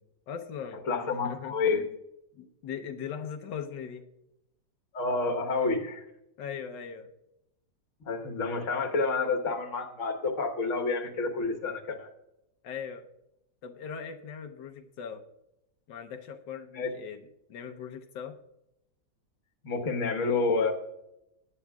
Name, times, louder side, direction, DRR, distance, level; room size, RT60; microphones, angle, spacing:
voice 1, 0.3-2.0 2.3-4.0 6.4-7.1 12.6-13.1 13.6-15.2 15.9-18.4, left 7 dB, 90° left, 5 dB, 1.6 m, -40 dB
voice 2, 0.9-1.8 4.9-6.0 8.0-12.1 16.8-16.9 19.6-20.7, left 4 dB, 45° left, 3 dB, 1.6 m, -29 dB
17.5 x 9.9 x 2.4 m, 0.85 s
omnidirectional pair, 1.9 m